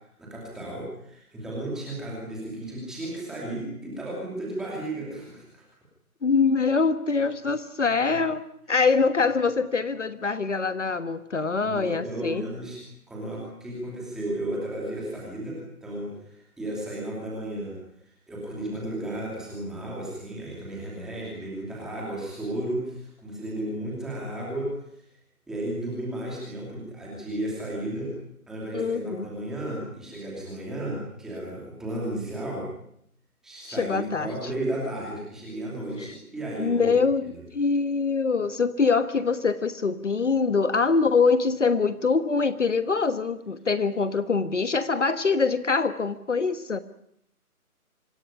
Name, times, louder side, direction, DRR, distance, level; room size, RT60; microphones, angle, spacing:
voice 1, 0.2-5.6 11.6-17.7 18.3-24.7 25.5-28.1 28.5-32.7 33.4-37.4, right 1 dB, ahead, -4 dB, 2.7 m, -34 dB
voice 2, 6.2-8.4 8.7-12.4 28.7-29.3 33.7-34.3 36.0-36.2 36.6-46.8, left 4 dB, 50° left, 12 dB, 1.4 m, -24 dB
26.0 x 17.0 x 10.0 m, 0.73 s
hypercardioid pair, 175°, 45 cm